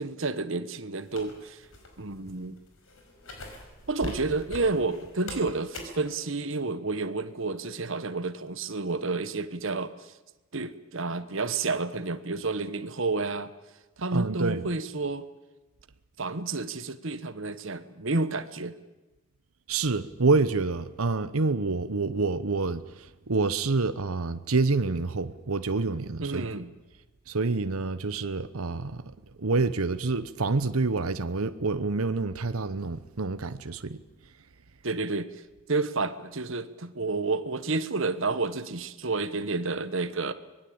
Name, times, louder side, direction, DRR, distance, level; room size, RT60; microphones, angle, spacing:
voice 1, 0.0-1.6 2.0-2.6 3.9-10.1 10.5-13.5 14.0-15.3 16.2-18.8 26.2-26.7 34.8-35.3 35.7-40.3, right 3 dB, 65° right, 1.3 m, -30 dB
sound 1, 1.1-6.1, left 1 dB, 80° left, 5.4 m, -42 dB
voice 2, 14.1-14.7 19.7-26.5 27.3-29.1 29.4-34.0, right 3 dB, 85° right, 1.0 m, -27 dB
24.5 x 20.5 x 8.7 m
head